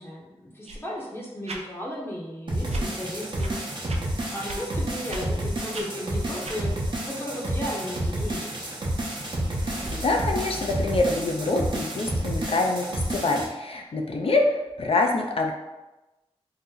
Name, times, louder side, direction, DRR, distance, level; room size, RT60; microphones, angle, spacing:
voice 1, 0.0-3.6 4.3-8.6, equal, 20° left, -4 dB, 0.8 m, -35 dB
sound 1, 0.7-0.8 1.4-1.6 2.7-2.9 3.4-3.5 3.9-4.0 4.5-4.6 5.1-5.2 5.7-5.9 6.4-6.6, right 1 dB, 70° right, 0.5 m, -35 dB
sound 2, 2.5-13.4, right 1 dB, 45° right, 0.8 m, -30 dB
sound 3, 8.8-12.4, equal, 25° right, 1.1 m, -41 dB
voice 2, 9.9-14.4 14.8-15.5, left 3 dB, 55° left, 2 dB, 0.5 m, -25 dB
2.8 x 2.0 x 3.7 m, 1.0 s
cardioid pair, 50°, 11 cm